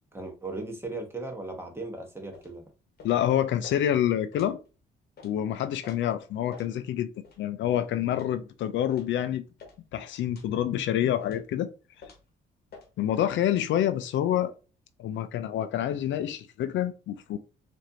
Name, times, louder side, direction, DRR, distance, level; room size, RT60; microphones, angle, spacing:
voice 1, 0.1-2.6, right 2 dB, 10° right, 1.1 m, -37 dB
sound 1, 2.3-2.5 3.0-3.2 3.6-3.8 4.3-4.5 5.2-5.3 5.8-6.0 6.5-6.7 7.2-7.4 8.1-8.3 8.9-9.1 9.6-9.8 10.3-10.5 11.2-11.5 12.0-12.3 12.7-12.9 13.5-13.7, left 4 dB, 55° left, 1.1 m, -49 dB
voice 2, 3.0-4.6 5.2-7.1 7.4-9.4 9.9-11.7 13.0-14.5 15.0-17.4, left 11 dB, 70° left, 0.4 m, -27 dB
4.3 x 2.6 x 2.6 m
cardioid pair, 90°, 20 cm